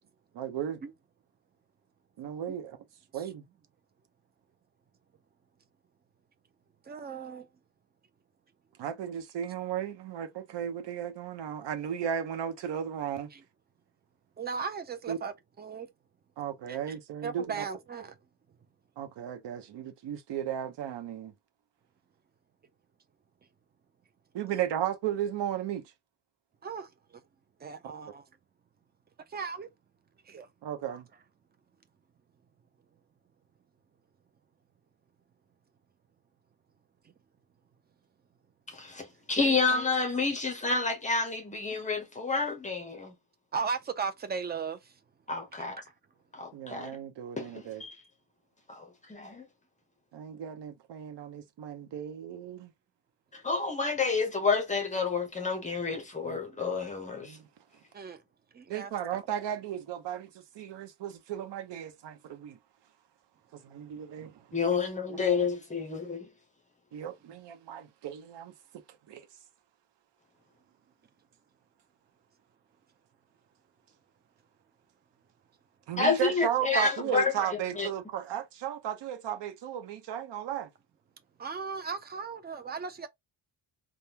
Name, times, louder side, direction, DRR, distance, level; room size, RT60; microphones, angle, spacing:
voice 1, 0.3-0.8 2.2-2.8 3.1-3.4 8.8-13.3 15.1-15.2 16.4-17.6 19.0-21.3 24.3-25.8 30.6-31.1 46.5-47.8 50.1-52.7 56.2-56.4 57.2-57.4 58.7-60.3 60.5-62.6 63.5-64.3 64.7-64.8 65.1-65.5 66.9-68.5 69.1-69.3 75.9-80.7, right 10 dB, 65° right, 0.8 m, -35 dB
voice 2, 6.9-7.5 13.3-13.4 14.4-15.9 16.7-16.9 17.2-18.2 26.6-26.9 27.6-28.2 29.3-29.7 30.3-30.5 30.9-31.0 39.4-39.6 43.5-44.9 45.6-45.7 57.9-58.2 58.5-59.2 81.4-83.1, right 5 dB, 25° right, 0.3 m, -37 dB
voice 3, 38.7-43.1 45.3-45.8 46.3-46.9 47.4-48.0 48.7-49.5 53.3-57.4 64.5-66.3 76.0-77.5 77.8-77.9, left 4 dB, 15° left, 0.7 m, -29 dB
3.5 x 2.2 x 2.8 m
wide cardioid pair, 180°, 46 cm